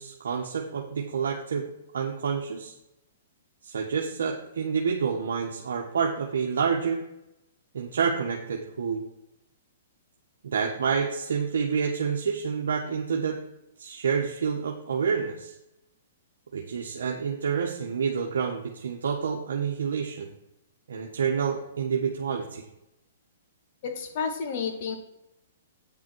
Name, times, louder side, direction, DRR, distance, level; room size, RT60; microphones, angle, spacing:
voice 1, 0.0-2.7 3.6-7.0 7.7-9.0 10.4-13.4 13.8-15.5 16.5-20.3 20.9-22.6, right 6 dB, 80° right, -1 dB, 1.2 m, -28 dB
voice 2, 23.8-24.9, left 6 dB, 50° left, 5 dB, 1.9 m, -31 dB
8.7 x 7.4 x 4.6 m, 0.87 s
hypercardioid pair, 140°, 0 cm